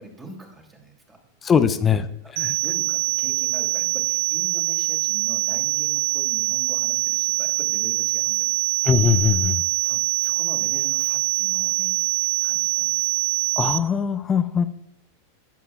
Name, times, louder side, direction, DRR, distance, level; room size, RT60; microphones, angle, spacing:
voice 1, 0.0-1.8 2.2-8.5 9.8-12.1 12.4-13.2, right 2 dB, 15° right, 2 dB, 2.5 m, -43 dB
voice 2, 1.4-2.0 2.3-2.6 8.8-9.6 13.6-14.7, left 7 dB, 20° left, 12 dB, 0.6 m, -20 dB
sound 1, 2.4-13.8, right 27 dB, 45° right, 0.4 m, -24 dB
17.5 x 7.5 x 2.4 m, 0.81 s
figure-of-eight pair, 90°, 0 cm